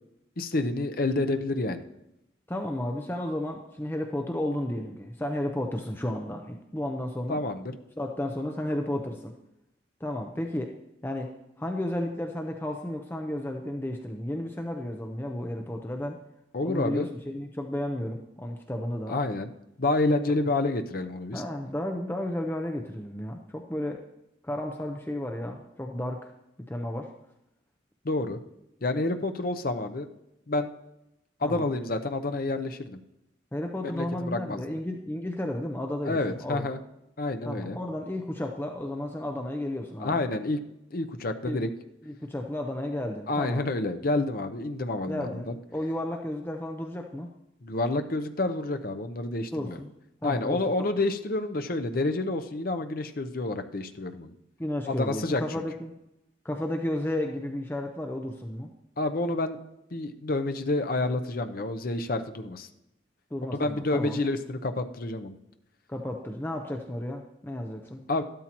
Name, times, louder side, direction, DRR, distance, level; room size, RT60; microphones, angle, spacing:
voice 1, 0.4-1.8 7.3-7.8 16.5-17.1 19.1-19.5 19.8-21.4 28.0-28.4 28.8-30.1 30.5-30.7 31.4-33.0 33.9-34.6 36.0-36.8 37.2-37.8 40.0-40.6 40.9-41.7 43.3-45.6 47.6-49.8 50.2-54.3 54.9-55.6 59.0-59.6 59.9-62.7 63.5-65.3 68.1-68.2, left 2 dB, 50° left, 7 dB, 0.7 m, -29 dB
voice 2, 2.5-7.4 8.0-9.3 10.0-10.7 11.0-16.2 16.6-19.2 21.3-24.0 24.4-26.3 26.7-27.1 31.4-31.7 33.5-36.7 37.5-40.3 41.4-41.7 42.0-43.7 45.1-47.3 49.5-49.9 50.2-50.9 54.6-55.9 56.4-58.7 63.3-64.2 65.9-68.0, left 1 dB, 10° left, 3 dB, 0.6 m, -33 dB
12.5 x 12.5 x 3.0 m, 0.87 s
head